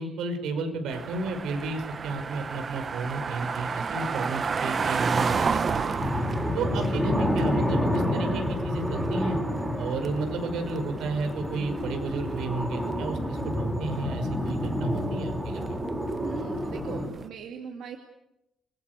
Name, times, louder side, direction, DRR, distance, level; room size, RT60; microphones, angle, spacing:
voice 1, 0.0-6.1 6.5-9.4 9.8-15.8, right 3 dB, 80° right, 7 dB, 5.6 m, -32 dB
sound 1, 0.9-17.3, right 5 dB, 30° right, 1.0 m, -33 dB
sound 2, 6.0-17.1, equal, 10° right, 5.5 m, -29 dB
voice 2, 16.2-18.0, right 7 dB, 65° right, 4 dB, 2.6 m, -39 dB
30.0 x 22.0 x 8.3 m, 0.90 s
cardioid pair, 170°, 0 cm